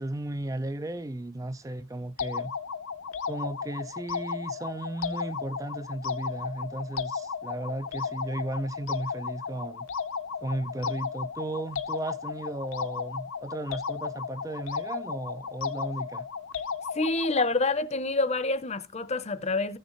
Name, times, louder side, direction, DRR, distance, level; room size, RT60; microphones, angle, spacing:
voice 1, 0.0-2.5 3.3-9.9 10.4-16.3, right 1 dB, 15° right, 0.4 m, -35 dB
sound 1, 2.2-17.6, left 6 dB, 70° left, 0.9 m, -35 dB
voice 2, 16.9-19.8, left 3 dB, 30° left, 0.8 m, -27 dB
15.0 x 6.5 x 3.1 m
head